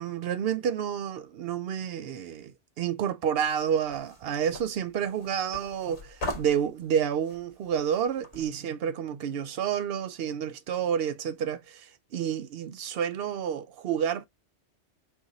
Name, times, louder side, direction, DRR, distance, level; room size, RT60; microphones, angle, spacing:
voice 1, 0.0-2.5 2.8-11.9 12.1-14.3, right 8 dB, 65° right, 0.7 m, -29 dB
sound 1, 3.4-8.5, left 1 dB, 70° left, 1.6 m, -41 dB
4.7 x 2.5 x 3.8 m
omnidirectional pair, 1.2 m